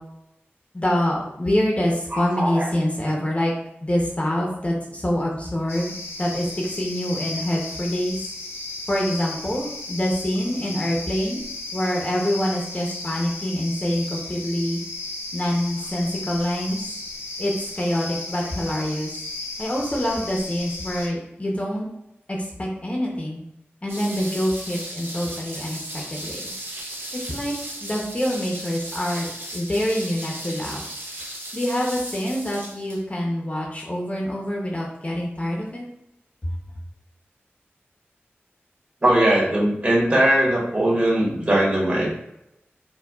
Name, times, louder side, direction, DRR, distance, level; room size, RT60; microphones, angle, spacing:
voice 1, 0.7-3.5 3.8-5.9 6.2-8.2 8.9-11.4 11.7-14.8 15.3-16.9 17.4-19.1 19.6-21.9 22.3-23.4 23.8-26.5 27.3-27.5 27.8-30.8 31.5-35.9 36.4-36.5, equal, 30° left, -2 dB, 0.7 m, -25 dB
voice 2, 2.1-2.7 39.0-42.1, right 1 dB, 40° right, -5 dB, 1.5 m, -20 dB
sound 1, 5.7-21.1, left 2 dB, 90° left, 0.6 m, -35 dB
sound 2, 23.9-33.0, right 1 dB, 60° right, 0.7 m, -36 dB
4.4 x 2.3 x 2.3 m, 0.81 s
wide cardioid pair, 60°, 4 cm